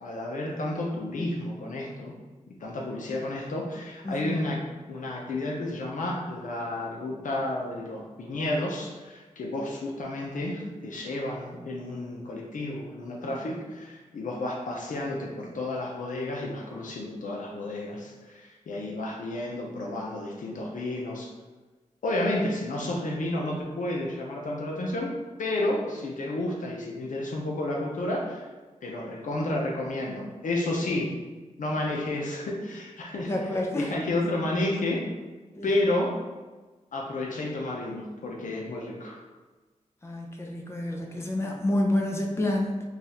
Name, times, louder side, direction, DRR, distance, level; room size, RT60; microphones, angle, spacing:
voice 1, 0.0-2.1 2.5-21.3 22.0-28.5 28.8-31.1 31.6-33.3 33.7-35.0 35.6-36.2 36.9-39.2, left 1 dB, 80° left, -1 dB, 0.7 m, -31 dB
voice 2, 4.0-4.4 33.3-33.9 35.6-35.7 40.0-42.8, left 1 dB, 20° left, 0 dB, 0.5 m, -28 dB
2.7 x 2.4 x 4.1 m, 1.3 s
wide cardioid pair, 80°, 13 cm